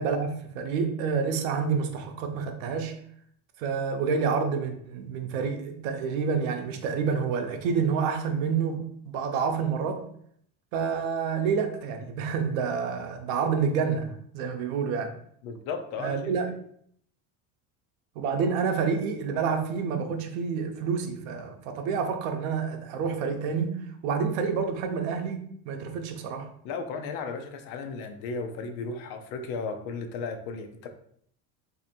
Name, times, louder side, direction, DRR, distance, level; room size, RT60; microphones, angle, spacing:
voice 1, 0.0-2.9 3.6-10.0 10.7-15.1 16.0-16.5 18.2-26.5, right 6 dB, 85° right, 6 dB, 0.7 m, -28 dB
voice 2, 15.4-16.2 26.6-30.9, left 4 dB, 45° left, 6 dB, 0.4 m, -35 dB
2.7 x 2.5 x 4.2 m, 0.66 s
cardioid pair, 180°, 40 cm